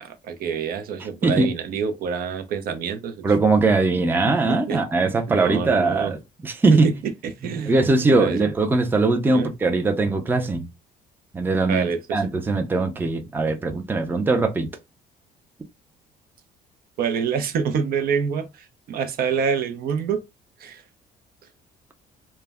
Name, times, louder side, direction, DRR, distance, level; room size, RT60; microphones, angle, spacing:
voice 1, 0.0-3.3 4.5-4.8 5.3-6.1 6.7-6.9 7.4-7.7 8.1-8.5 9.3-9.5 11.7-12.2 17.0-20.2 20.6-20.8, right 6 dB, 60° right, 0.5 m, -26 dB
voice 2, 1.2-1.5 3.2-6.9 7.4-10.7 11.3-14.7, right 3 dB, 10° right, 0.4 m, -21 dB
2.2 x 2.0 x 3.3 m
cardioid pair, 110°, 17 cm